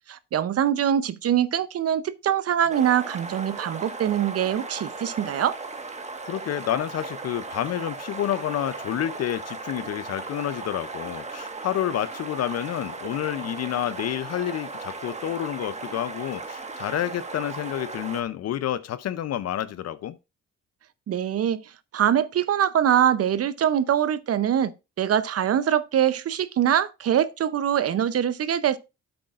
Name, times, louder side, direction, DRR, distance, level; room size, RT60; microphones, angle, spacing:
voice 1, 0.1-5.5 21.1-21.6 21.9-24.7 25.0-28.8, right 10 dB, 50° right, 0.7 m, -23 dB
sound 1, 2.7-18.2, right 3 dB, 20° right, 1.4 m, -37 dB
voice 2, 6.2-20.2, left 11 dB, 55° left, 0.6 m, -29 dB
10.5 x 7.8 x 2.4 m
cardioid pair, 90°, 30 cm